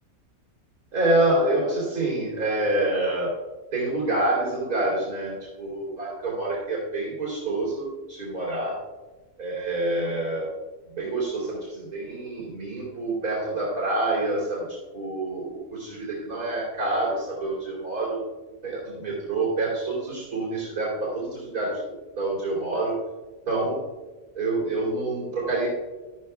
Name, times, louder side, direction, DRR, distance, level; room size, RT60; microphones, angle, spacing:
voice 1, 0.9-3.3 3.7-8.8 9.4-10.5 10.9-18.2 18.6-22.9 23.5-23.8 24.4-25.7, right 2 dB, 80° right, -5 dB, 3.8 m, -27 dB
13.0 x 13.0 x 2.3 m, 1.2 s
omnidirectional pair, 1.6 m